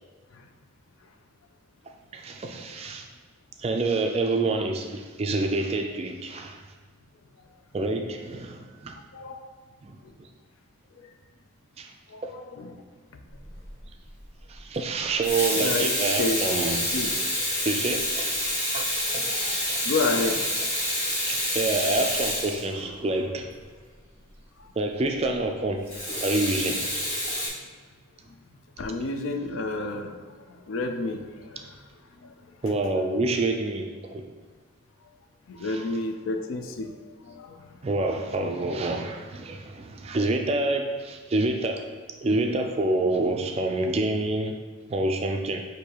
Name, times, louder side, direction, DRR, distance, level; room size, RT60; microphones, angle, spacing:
voice 1, 2.1-3.1 3.6-6.6 7.7-9.0 9.8-10.3 11.8-11.9 14.5-16.9 17.6-18.3 18.7-18.9 19.1-19.2 19.7-19.8 21.3-23.5 24.8-25.9 26.2-26.9 32.6-34.2 35.7-35.8 37.8-41.9 42.2-44.6 44.9-45.7, right 2 dB, 30° right, 3 dB, 0.3 m, -27 dB
voice 2, 9.1-9.5 10.0-10.1 11.0-11.1 12.1-12.8 15.5-15.8 16.2-16.4 16.9-17.1 19.1-19.6 19.8-20.4 24.6-24.7 28.8-31.8 32.2-32.3 35.5-37.8, left 3 dB, 75° left, 6 dB, 0.4 m, -31 dB
Water tap faucet / Sink (filling or washing), 13.4-13.7 15.0-23.2 25.9-27.5, left 1 dB, 20° left, 1.4 m, -28 dB
6.2 x 2.7 x 2.9 m, 1.5 s
head